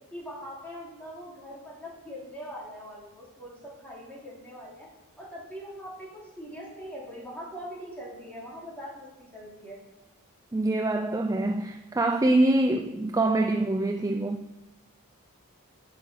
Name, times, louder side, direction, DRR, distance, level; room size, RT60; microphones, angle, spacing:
voice 1, 0.1-4.9 5.2-9.8, equal, 5° left, 3.0 m, -42 dB
voice 2, 10.5-14.4, right 2 dB, 15° right, 0.3 m, -25 dB
10.5 x 6.0 x 5.5 m
head